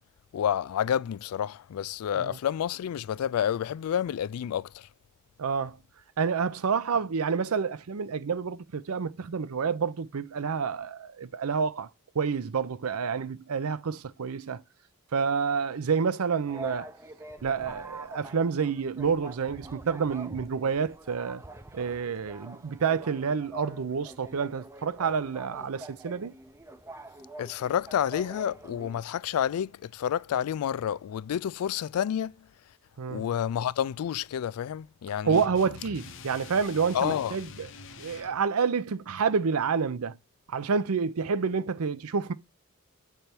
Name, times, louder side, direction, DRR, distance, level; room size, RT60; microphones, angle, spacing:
voice 1, 0.3-4.9 27.4-32.5 33.1-35.4 36.9-37.4, left 9 dB, 75° left, 0.3 m, -29 dB
voice 2, 5.4-5.8 6.2-11.9 12.1-14.6 15.1-16.9 17.4-21.4 21.7-26.3 33.0-33.2 35.2-37.7 38.0-40.2 40.5-42.3, right 5 dB, 75° right, 0.5 m, -28 dB
sound 1, 16.5-29.0, right 2 dB, 10° right, 0.4 m, -45 dB
sound 2, 35.3-38.4, left 5 dB, 60° left, 0.7 m, -45 dB
7.9 x 3.4 x 4.4 m
head